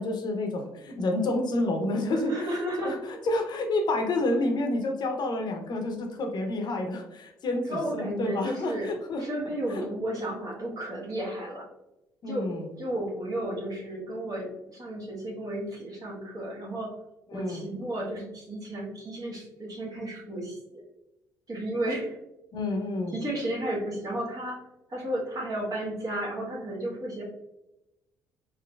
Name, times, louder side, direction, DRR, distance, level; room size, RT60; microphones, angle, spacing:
voice 1, 0.0-9.2 9.7-9.9 12.2-12.7 17.3-17.7 22.5-23.2, left 2 dB, 50° left, 4 dB, 0.6 m, -29 dB
voice 2, 2.3-3.0 7.7-8.9 9.2-11.7 12.3-12.5 12.8-16.9 17.3-20.8 21.5-22.2 23.1-24.6 24.9-27.2, right 1 dB, 45° right, -4 dB, 1.2 m, -33 dB
3.6 x 2.9 x 2.3 m, 0.93 s
hypercardioid pair, 55°, 9 cm